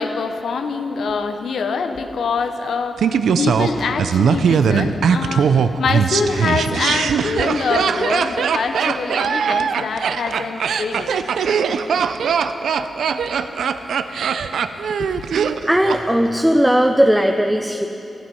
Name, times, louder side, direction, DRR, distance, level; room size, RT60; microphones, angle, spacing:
voice 1, 0.0-11.1 15.0-15.1, left 4 dB, 80° left, 8 dB, 0.8 m, -24 dB
Laughter, 3.0-16.0 16.3-16.4, right 6 dB, 85° right, 0.4 m, -20 dB
voice 2, 15.7-17.9, equal, 5° right, 4 dB, 0.5 m, -17 dB
12.5 x 11.5 x 5.5 m, 2.8 s
cardioid pair, 85°, 0 cm